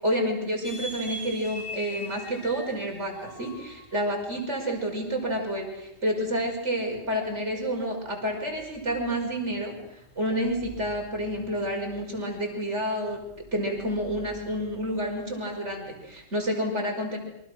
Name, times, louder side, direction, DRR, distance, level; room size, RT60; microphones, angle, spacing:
voice 1, 0.0-9.8 10.2-13.2 13.5-17.2, equal, 65° right, 2 dB, 5.9 m, -29 dB
sound 1, 0.6-16.3, left 1 dB, 90° left, 3.8 m, -46 dB
28.5 x 24.5 x 6.4 m, 0.79 s
omnidirectional pair, 1.3 m